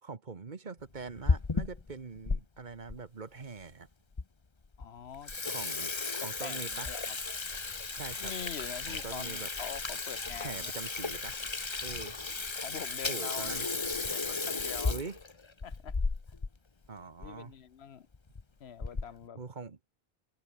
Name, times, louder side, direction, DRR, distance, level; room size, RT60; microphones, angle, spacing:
voice 1, 0.0-3.9 5.5-6.9 7.9-8.3 8.9-9.5 10.4-11.4 11.8-12.1 13.1-13.7 14.9-15.2 16.9-17.5 19.3-19.8, right 4 dB, 50° right, 1.4 m, -43 dB
Water tap faucet / Sink (filling or washing), 1.0-2.4 2.9-3.0 3.7-3.8 4.2-4.3 4.6-4.8 5.1-16.5 16.8-16.9 17.2-17.3 18.1-18.4 18.8-19.2, left 4 dB, 30° left, 1.0 m, -34 dB
voice 2, 4.8-5.3 6.2-7.2 8.2-10.7 12.5-15.0 15.6-15.9 17.2-18.1 18.6-19.4, left 8 dB, 80° left, 1.2 m, -44 dB
omnidirectional pair, 1.1 m